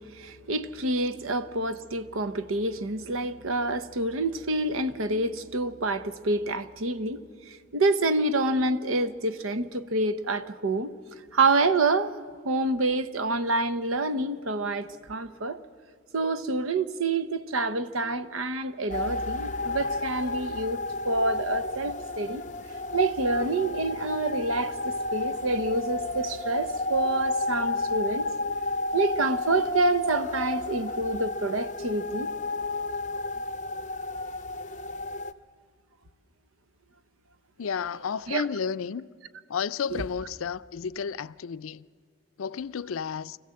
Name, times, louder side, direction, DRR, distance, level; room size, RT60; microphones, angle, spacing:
voice 1, 0.0-10.9 11.3-12.1 12.4-15.6 16.1-22.4 22.9-28.3 28.9-32.3 38.3-38.5 39.9-40.0, right 2 dB, 85° right, 0.9 m, -27 dB
sound 1, 18.9-35.3, left 2 dB, 35° left, 0.5 m, -32 dB
voice 2, 37.6-39.1 39.5-41.8 42.4-43.4, left 6 dB, 85° left, 0.5 m, -32 dB
25.0 x 15.5 x 7.7 m
head